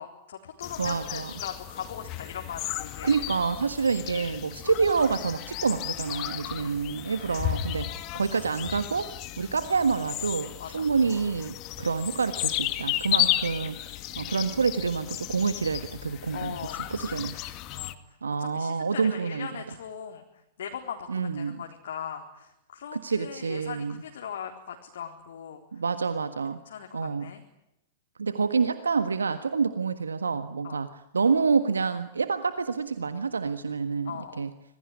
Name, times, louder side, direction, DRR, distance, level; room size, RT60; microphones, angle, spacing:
voice 1, 0.0-3.2 6.5-6.8 7.8-8.0 10.6-10.8 13.2-13.3 16.3-17.2 17.7-17.9 18.4-20.3 20.6-25.6 26.7-27.4 30.6-30.8 34.0-34.5, left 8 dB, 60° left, 3 dB, 3.9 m, -40 dB
sound 1, 0.6-17.9, left 14 dB, 35° left, 2.1 m, -34 dB
voice 2, 0.8-1.3 3.0-9.1 9.4-16.6 16.9-17.3 18.2-19.5 21.1-21.6 22.9-24.0 25.7-26.6 26.9-27.3 28.2-34.5, right 5 dB, 75° right, 11 dB, 1.5 m, -27 dB
26.5 x 22.5 x 9.9 m, 0.86 s
figure-of-eight pair, 105°, 0 cm